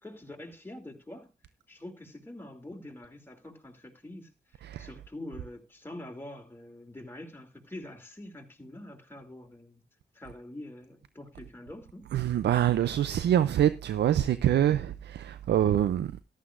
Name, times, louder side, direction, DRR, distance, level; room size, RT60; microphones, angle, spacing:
voice 1, 0.0-1.3 1.7-9.8 10.1-12.1, left 1 dB, 10° left, 2.8 m, -45 dB
voice 2, 12.1-16.1, right 11 dB, 80° right, 0.5 m, -25 dB
14.0 x 11.5 x 2.5 m
cardioid pair, 50°, 17 cm